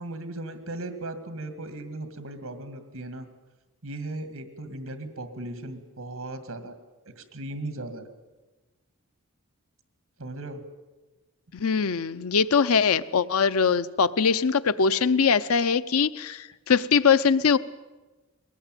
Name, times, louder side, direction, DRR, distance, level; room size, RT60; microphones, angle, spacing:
voice 1, 0.0-3.3 3.8-6.8 7.1-8.1 10.2-10.6, right 2 dB, 75° right, 9 dB, 2.1 m, -37 dB
voice 2, 11.5-17.6, left 6 dB, 85° left, 15 dB, 0.7 m, -22 dB
22.0 x 18.5 x 9.1 m, 1.2 s
head